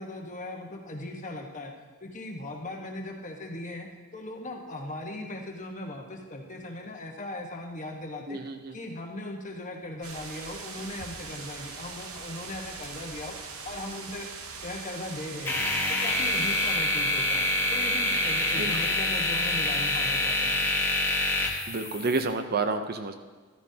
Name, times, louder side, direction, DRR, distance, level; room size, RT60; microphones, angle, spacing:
voice 1, 0.0-1.7 2.0-8.4 8.7-13.4 13.6-14.3 14.6-15.6 15.9-20.6, left 1 dB, 35° left, 1 dB, 1.3 m, -38 dB
voice 2, 8.3-8.8 18.6-18.7 21.7-23.1, right 3 dB, 45° right, 8 dB, 0.6 m, -29 dB
sound 1, 10.0-16.7, right 4 dB, 70° right, 1.1 m, -41 dB
sound 2, 15.5-22.2, left 1 dB, 10° left, 1.3 m, -26 dB
14.0 x 12.5 x 2.8 m, 1.5 s
head